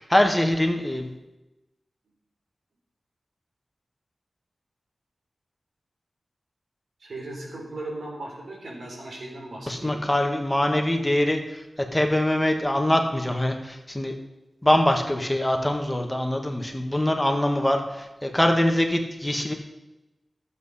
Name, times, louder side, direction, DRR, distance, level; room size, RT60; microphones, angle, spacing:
voice 1, 0.1-1.1 9.7-11.4 11.8-14.1 14.6-19.5, left 1 dB, 10° left, 4 dB, 1.6 m, -23 dB
voice 2, 7.0-10.0, right 2 dB, 85° right, -3 dB, 4.3 m, -37 dB
12.5 x 8.4 x 5.6 m, 1.0 s
wide cardioid pair, 80°, 0 cm